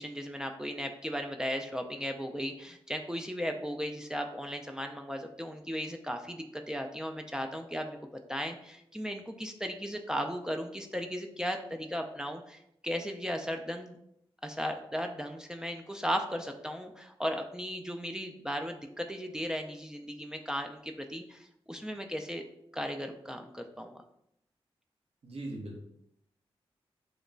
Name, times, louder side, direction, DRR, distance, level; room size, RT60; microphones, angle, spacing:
voice 1, 0.0-8.0 8.3-14.0 14.4-22.4 22.7-24.0, equal, 5° right, 4 dB, 0.4 m, -36 dB
voice 2, 25.2-25.8, right 1 dB, 70° right, 0 dB, 0.9 m, -39 dB
3.0 x 2.1 x 3.7 m, 0.75 s
cardioid pair, 50°, 10 cm